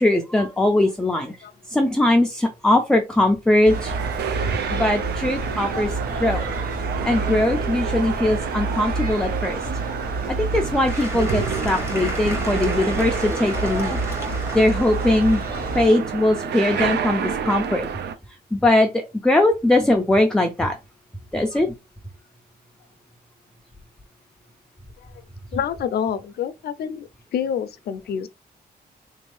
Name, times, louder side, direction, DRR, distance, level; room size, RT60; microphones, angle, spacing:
voice 1, 0.0-1.3 1.7-3.9 4.7-5.9 6.2-6.5 7.0-9.6 10.3-14.0 14.5-15.4 15.7-17.9 18.5-20.8 21.3-21.7, left 1 dB, 5° left, 0.3 m, -20 dB
sound 1, 3.6-15.9, right 2 dB, 65° right, 1.1 m, -29 dB
sound 2, 3.7-18.2, right 7 dB, 80° right, 0.5 m, -29 dB
Applause / Crowd, 10.9-17.2, equal, 15° right, 0.8 m, -35 dB
voice 2, 25.5-28.3, left 8 dB, 70° left, 0.5 m, -28 dB
3.6 x 2.6 x 3.1 m
wide cardioid pair, 170°, 17 cm